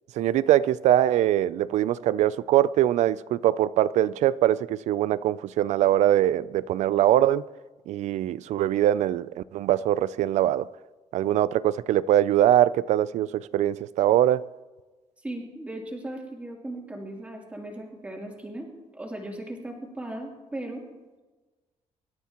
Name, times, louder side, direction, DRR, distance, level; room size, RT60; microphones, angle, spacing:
voice 1, 0.2-7.4 7.9-10.7 11.1-14.5, right 12 dB, 75° right, 0.4 m, -22 dB
voice 2, 15.2-18.7 18.9-20.8, right 1 dB, 10° right, 3.1 m, -37 dB
25.5 x 13.0 x 3.0 m
cardioid pair, 165°, 12 cm